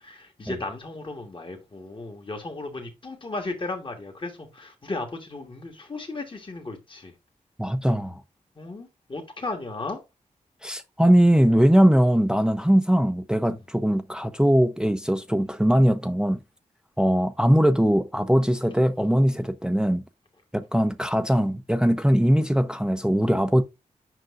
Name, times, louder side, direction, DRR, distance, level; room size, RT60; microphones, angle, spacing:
voice 1, 0.0-7.1 8.6-10.0, left 2 dB, 35° left, 1.5 m, -35 dB
voice 2, 7.6-8.2 10.6-16.4 17.0-20.0 20.5-23.6, equal, 5° right, 0.6 m, -21 dB
7.6 x 5.5 x 2.5 m
cardioid pair, 55°, 14 cm